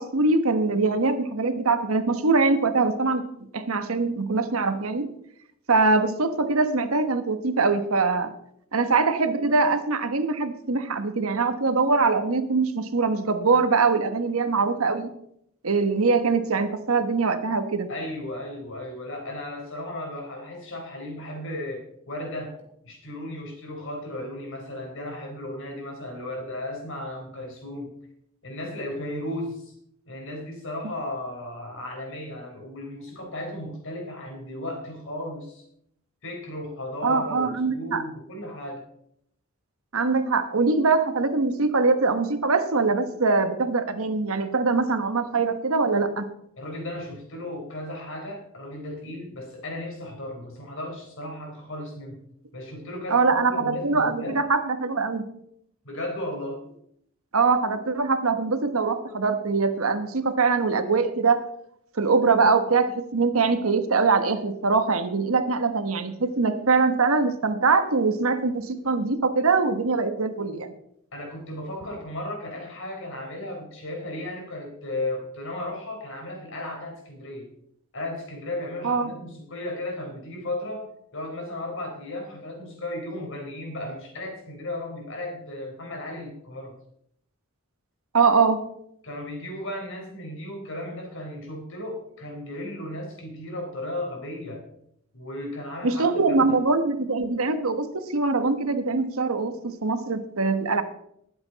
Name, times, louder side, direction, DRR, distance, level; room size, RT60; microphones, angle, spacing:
voice 1, 0.0-3.2 3.5-5.1 5.7-8.3 8.7-15.1 15.6-17.9 37.0-38.0 39.9-46.3 53.1-55.2 57.3-61.4 62.0-70.7 78.8-79.1 88.1-88.6 95.8-100.8, right 4 dB, 75° right, 9 dB, 1.2 m, -23 dB
voice 2, 17.9-22.6 22.8-27.9 28.4-29.7 30.1-35.6 36.2-38.9 46.6-52.2 52.5-54.4 55.8-56.6 71.1-77.5 77.9-86.8 89.0-94.6 95.1-96.6, left 1 dB, 60° left, 1 dB, 4.0 m, -35 dB
20.0 x 7.9 x 4.1 m, 0.73 s
head